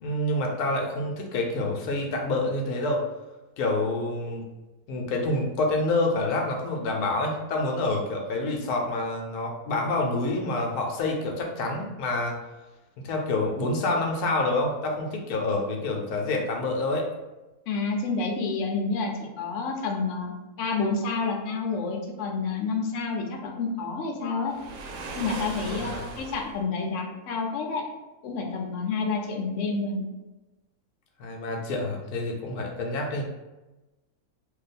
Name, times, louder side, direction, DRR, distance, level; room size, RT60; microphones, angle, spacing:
voice 1, 0.0-3.0 3.6-4.4 4.9-12.4 13.0-17.1 25.7-26.0 31.2-33.2, left 2 dB, 85° left, 1 dB, 1.1 m, -27 dB
voice 2, 17.7-24.5 25.2-27.8 28.2-30.1, left 4 dB, 65° left, 1 dB, 0.9 m, -29 dB
Waves surf, 24.5-26.6, right 3 dB, 70° right, 0.9 m, -37 dB
2.6 x 2.2 x 4.1 m, 1.1 s
omnidirectional pair, 1.6 m